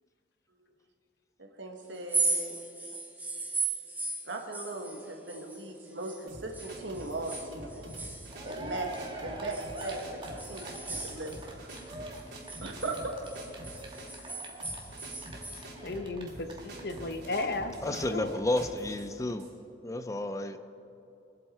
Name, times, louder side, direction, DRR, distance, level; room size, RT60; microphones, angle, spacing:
voice 1, 1.4-2.5 4.2-7.9 8.4-8.9 9.2-11.7 12.6-13.2 17.9-18.0, right 2 dB, 80° right, 2 dB, 1.6 m, -38 dB
sound 1, 2.0-6.2 6.5-9.1 9.5-11.8 12.2-15.7, right 3 dB, 10° right, 0.9 m, -37 dB
sound 2, 6.3-19.6, right 1 dB, 65° right, 3.6 m, -46 dB
Cheering, 8.0-8.1 8.3-17.4 17.7-17.8 18.0-18.1, right 1 dB, 25° right, 1.6 m, -44 dB
voice 2, 15.8-17.7 18.1-18.4, left 2 dB, 60° left, 8 dB, 0.8 m, -34 dB
voice 3, 17.8-19.5 19.8-20.6, left 1 dB, 15° left, 10 dB, 0.4 m, -31 dB
22.0 x 7.8 x 4.4 m, 2.8 s
head